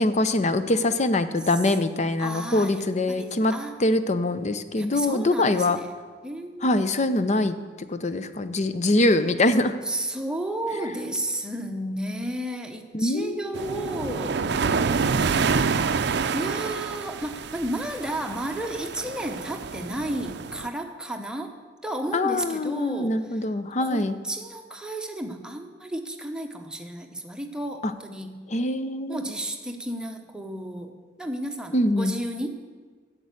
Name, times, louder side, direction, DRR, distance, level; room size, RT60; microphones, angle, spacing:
voice 1, 0.0-3.5 3.8-5.8 6.6-7.5 7.9-9.8 12.9-14.0 22.1-24.2 27.8-27.9 28.5-29.3 31.7-32.1, left 2 dB, 40° left, 11 dB, 0.6 m, -24 dB
voice 2, 2.2-3.8 4.7-5.9 6.2-6.8 9.8-14.5 16.3-21.6 21.8-23.2 23.8-28.5 29.1-32.7, right 1 dB, 5° right, 4 dB, 0.9 m, -32 dB
sound 1, 13.5-20.7, right 5 dB, 60° right, 0.5 m, -27 dB
10.5 x 7.5 x 8.3 m, 1.5 s
head